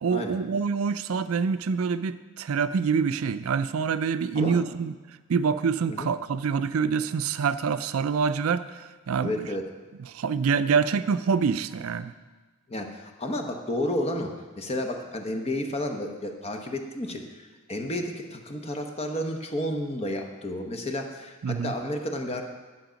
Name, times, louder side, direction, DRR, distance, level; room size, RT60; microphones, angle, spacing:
voice 1, 0.0-4.9 5.3-9.5 10.0-12.1 21.4-21.7, right 5 dB, 75° right, 13 dB, 0.4 m, -26 dB
voice 2, 9.2-9.6 12.7-22.4, left 1 dB, 30° left, 4 dB, 0.9 m, -31 dB
11.0 x 7.2 x 5.1 m, 1.3 s
head